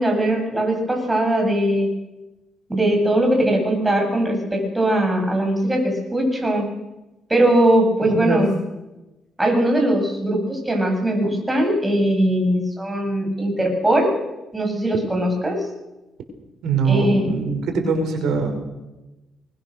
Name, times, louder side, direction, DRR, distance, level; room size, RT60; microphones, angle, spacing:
voice 1, 0.0-1.9 2.7-6.6 7.3-8.5 9.4-14.1 14.5-15.6 16.8-17.2, right 1 dB, 15° right, 2 dB, 8.0 m, -20 dB
voice 2, 8.0-8.4 16.6-18.5, right 4 dB, 75° right, 3 dB, 5.3 m, -22 dB
24.0 x 21.5 x 6.7 m, 1.0 s
cardioid pair, 90°, 0 cm